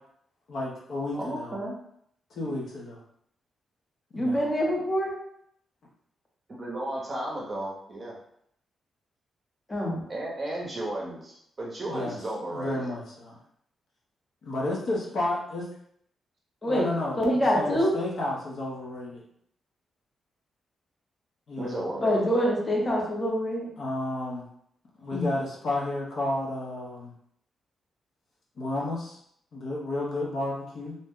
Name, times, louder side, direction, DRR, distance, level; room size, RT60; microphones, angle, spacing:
voice 1, 0.5-1.6 2.3-3.0 4.1-4.5 11.9-12.2 12.5-13.4 14.4-15.6 16.7-19.2 21.5-21.8 23.8-24.5 25.0-27.1 28.6-29.2 29.5-31.0, left 2 dB, 55° left, -4 dB, 0.7 m, -32 dB
voice 2, 1.1-1.8 6.6-8.2 10.1-12.9 21.6-22.2, right 1 dB, 25° right, -3 dB, 0.7 m, -34 dB
voice 3, 4.1-5.1 9.7-10.0 16.6-16.9 17.2-17.9 22.0-23.7 25.1-25.3, equal, 20° left, -3 dB, 0.8 m, -25 dB
2.6 x 2.1 x 3.5 m, 0.69 s
wide cardioid pair, 155°, 0 cm